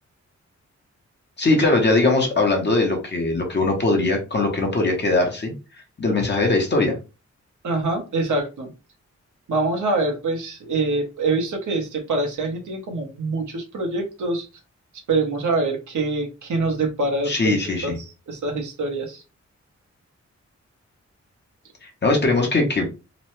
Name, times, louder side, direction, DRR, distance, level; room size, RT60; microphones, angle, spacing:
voice 1, 1.4-5.5 6.0-7.0 17.3-18.0 21.8-22.9, left 2 dB, 35° left, 2 dB, 0.8 m, -20 dB
voice 2, 7.6-8.7 9.5-14.5 15.1-17.5 17.8-19.2, right 3 dB, 90° right, 2 dB, 1.0 m, -25 dB
3.0 x 2.1 x 3.1 m, 0.30 s
wide cardioid pair, 125°, 29 cm